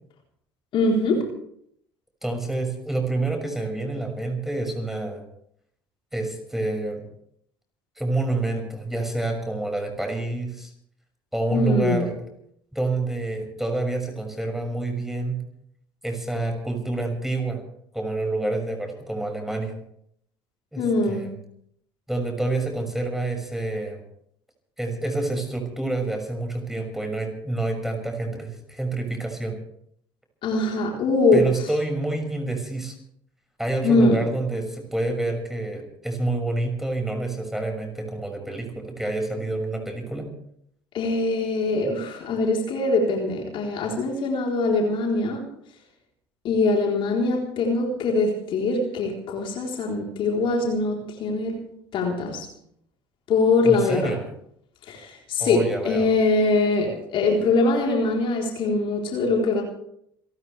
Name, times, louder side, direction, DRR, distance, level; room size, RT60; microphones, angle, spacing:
voice 1, 0.7-1.3 11.5-12.1 20.8-21.3 30.4-31.5 33.8-34.2 40.9-45.4 46.4-51.6 51.9-52.5 53.3-54.1 54.9-59.6, left 3 dB, 50° left, 0 dB, 4.0 m, -22 dB
voice 2, 2.2-5.2 6.1-7.0 8.0-10.7 11.3-12.2 12.7-15.4 16.0-17.6 17.9-19.7 20.7-21.3 22.1-24.0 24.8-29.6 31.3-32.9 33.6-40.3 53.6-54.2 55.4-56.1, right 2 dB, 5° right, 3 dB, 6.2 m, -28 dB
28.0 x 14.0 x 3.5 m, 0.71 s
hypercardioid pair, 60°, 11 cm